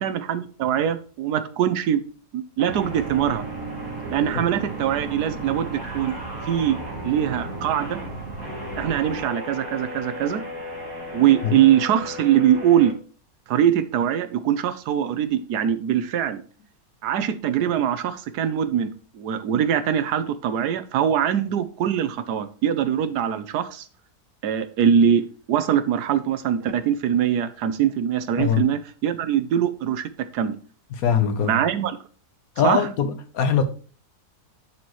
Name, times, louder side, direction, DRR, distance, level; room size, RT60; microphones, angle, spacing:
voice 1, 0.0-2.0 2.3-3.4 4.1-6.2 6.5-8.0 8.8-10.4 11.1-13.0 13.5-16.4 17.0-18.9 19.1-23.8 24.4-30.6 31.4-32.0 32.6-32.8, right 9 dB, 85° right, 1.2 m, -22 dB
sound 1, 2.6-12.9, equal, 15° right, 1.6 m, -36 dB
sound 2, 2.7-9.2, right 3 dB, 55° right, 1.6 m, -37 dB
voice 2, 28.4-28.7 30.9-31.6 32.6-33.6, left 7 dB, 65° left, 1.3 m, -22 dB
10.5 x 4.3 x 3.1 m
omnidirectional pair, 1.7 m